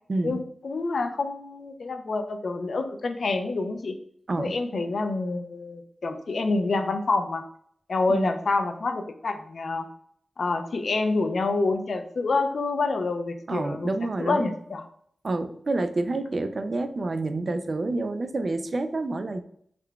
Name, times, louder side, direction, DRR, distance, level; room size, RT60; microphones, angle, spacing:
voice 1, 0.1-0.4 4.3-4.5 8.1-8.3 13.5-14.5 15.2-19.4, right 2 dB, 45° right, 9 dB, 0.3 m, -28 dB
voice 2, 0.6-3.9 4.4-7.4 7.9-9.9 10.4-13.9 14.2-14.8, left 3 dB, 65° left, 7 dB, 0.4 m, -27 dB
3.7 x 2.2 x 3.4 m, 0.65 s
wide cardioid pair, 105°, 0 cm